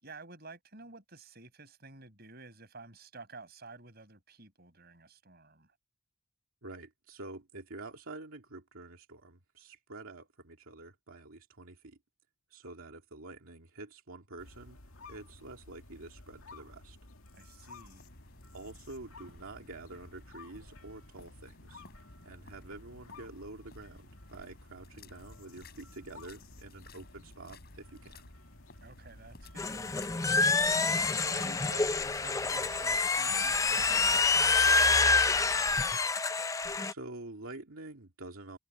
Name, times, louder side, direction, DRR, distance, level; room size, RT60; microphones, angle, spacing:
voice 1, 0.0-5.7 17.3-18.0 28.8-30.3 30.8-35.7, right 3 dB, 45° right, 5.7 m, -50 dB
voice 2, 6.6-12.0 12.5-14.8 15.1-17.0 18.5-21.9 22.2-28.3 36.8-38.6, right 2 dB, 75° right, 2.4 m, -47 dB
sound 1, 14.4-33.1, left 2 dB, 80° left, 2.2 m, -54 dB
sound 2, 17.9-35.8, left 2 dB, 45° left, 7.8 m, -57 dB
sound 3, 29.6-36.9, left 4 dB, 15° left, 0.4 m, -27 dB
head